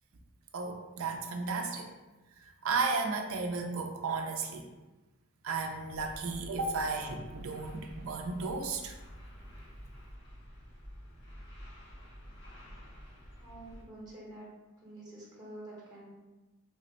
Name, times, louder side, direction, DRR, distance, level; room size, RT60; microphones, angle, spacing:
voice 1, 0.5-1.9 2.6-4.7 5.4-8.9, right 4 dB, 65° right, 3 dB, 0.4 m, -34 dB
sound 1, 5.9-13.8, equal, 55° left, 1.0 m, -49 dB
voice 2, 13.4-14.5 14.8-16.1, right 1 dB, 20° right, -5 dB, 0.8 m, -48 dB
3.3 x 2.1 x 3.9 m, 1.1 s
head